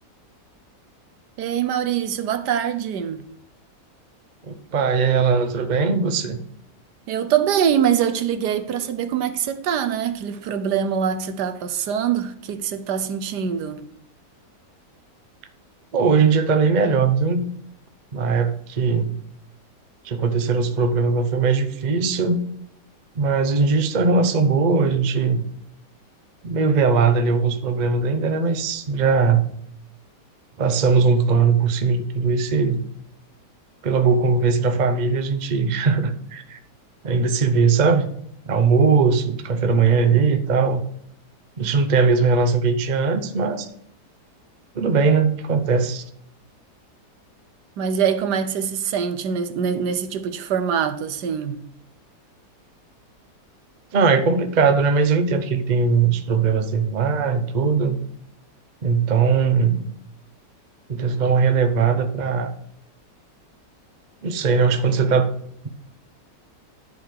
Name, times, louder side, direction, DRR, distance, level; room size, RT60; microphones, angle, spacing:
voice 1, 1.4-3.3 7.1-13.8 47.8-51.6, right 8 dB, 70° right, 1.3 m, -24 dB
voice 2, 4.4-6.4 15.9-17.5 18.1-19.1 20.0-22.4 23.2-25.4 26.4-29.5 30.6-32.8 33.8-36.6 37.0-38.0 38.5-40.8 41.6-43.7 44.7-46.0 53.9-58.0 58.8-59.8 60.9-62.5 64.2-65.3, right 5 dB, 50° right, 0.5 m, -20 dB
11.0 x 4.3 x 6.5 m
omnidirectional pair, 1.9 m